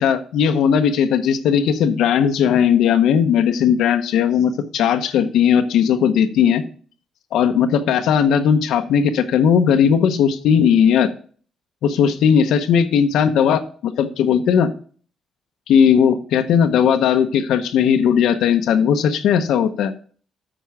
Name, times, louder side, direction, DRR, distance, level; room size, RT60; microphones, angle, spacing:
voice 1, 0.0-6.6 7.3-11.1 11.8-14.7 15.7-19.9, left 8 dB, 80° left, 8 dB, 0.8 m, -17 dB
8.9 x 4.6 x 5.9 m, 0.44 s
cardioid pair, 90°, 0 cm